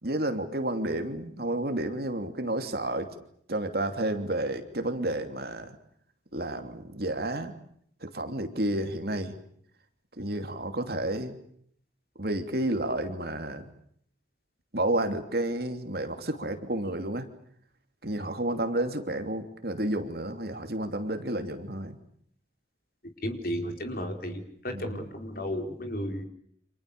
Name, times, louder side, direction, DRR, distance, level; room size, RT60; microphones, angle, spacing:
voice 1, 0.0-3.1 3.5-5.8 6.3-7.6 8.0-9.4 10.2-11.4 12.2-13.7 14.7-17.3 18.0-22.0 23.6-23.7 24.7-25.1, right 1 dB, 55° right, 6 dB, 3.0 m, -31 dB
voice 2, 23.2-26.3, equal, 50° left, 5 dB, 4.7 m, -33 dB
29.5 x 27.0 x 6.9 m, 0.67 s
head